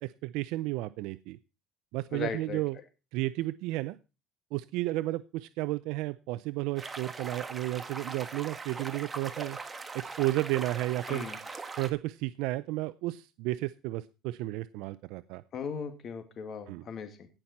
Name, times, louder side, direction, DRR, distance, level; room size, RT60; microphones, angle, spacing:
voice 1, 0.0-1.4 1.9-2.8 3.1-4.0 4.5-9.6 9.9-11.3 11.8-15.4 16.7-16.8, right 18 dB, 75° right, 15 dB, 0.5 m, -32 dB
voice 2, 2.1-2.6 11.1-11.4 15.5-17.3, left 6 dB, 45° left, 7 dB, 2.4 m, -38 dB
sound 1, 6.8-11.9, right 4 dB, 20° right, 1.4 m, -41 dB
18.0 x 6.0 x 4.2 m, 0.30 s
cardioid pair, 120°, 0 cm